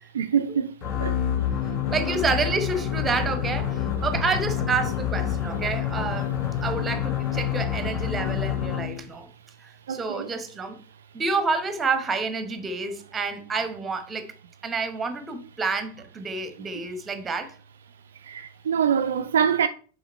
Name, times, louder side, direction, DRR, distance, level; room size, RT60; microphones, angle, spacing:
voice 1, 0.1-0.7 1.0-1.2 9.9-10.3 18.3-19.7, right 8 dB, 65° right, 0.4 m, -24 dB
sound 1, 0.8-9.1, left 9 dB, 30° left, 1.0 m, -27 dB
voice 2, 1.9-6.3 6.6-9.3 9.6-10.8 11.1-14.3 14.6-17.5, right 4 dB, 15° right, 1.1 m, -29 dB
6.2 x 4.8 x 4.4 m
figure-of-eight pair, 90°, 0 cm